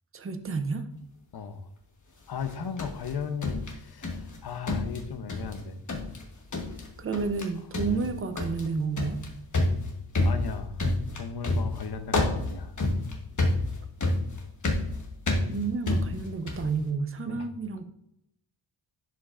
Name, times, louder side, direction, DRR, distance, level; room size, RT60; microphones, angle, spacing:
voice 1, 0.1-0.9 7.0-9.2 15.5-17.8, right 4 dB, 30° right, 9 dB, 0.5 m, -30 dB
voice 2, 2.3-5.8 7.8-8.0 10.2-10.8 11.2-12.7 17.3-17.5, left 6 dB, 60° left, 9 dB, 0.8 m, -36 dB
sound 1, 2.4-4.4 4.7-5.6 5.9-6.2 6.5-6.9 7.1-7.5 7.7-16.7, left 2 dB, 40° left, 1.2 m, -29 dB
11.0 x 5.1 x 2.5 m, 0.78 s
wide cardioid pair, 150°, 44 cm